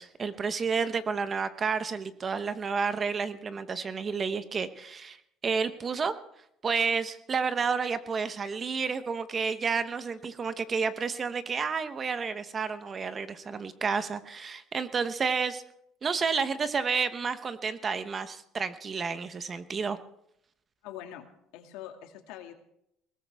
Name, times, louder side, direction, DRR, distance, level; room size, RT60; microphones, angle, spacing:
voice 1, 0.0-5.2 5.4-6.1 6.6-15.6 16.0-20.0, right 5 dB, 30° right, 12 dB, 0.9 m, -30 dB
voice 2, 20.8-21.3 21.5-22.5, left 11 dB, 85° left, 4 dB, 2.2 m, -43 dB
20.0 x 18.5 x 3.5 m, 0.75 s
cardioid pair, 135°, 0 cm